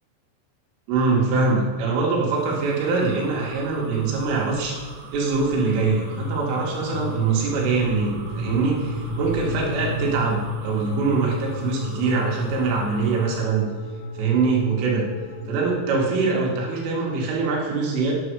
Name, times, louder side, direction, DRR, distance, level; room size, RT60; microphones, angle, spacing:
voice 1, 0.9-4.9 5.1-13.7 14.2-15.1 15.5-18.1, right 4 dB, 85° right, -2 dB, 4.5 m, -23 dB
sound 1, 2.3-13.4, right 2 dB, 65° right, 2.6 m, -37 dB
sound 2, 5.9-15.7, left 2 dB, 85° left, 3.3 m, -33 dB
9.1 x 8.0 x 4.7 m, 1.5 s
omnidirectional pair, 5.5 m